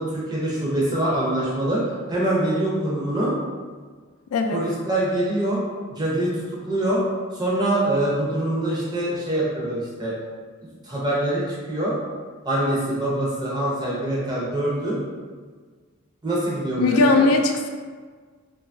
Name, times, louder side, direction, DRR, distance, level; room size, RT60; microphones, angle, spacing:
voice 1, 0.0-1.8 2.1-3.3 4.5-5.6 5.9-6.3 6.6-7.0 7.3-10.1 10.8-12.0 12.4-15.0 16.2-17.2, right 1 dB, 20° right, -6 dB, 0.6 m, -24 dB
voice 2, 16.8-17.7, left 3 dB, 85° left, 5 dB, 0.3 m, -19 dB
2.8 x 2.3 x 2.5 m, 1.6 s
head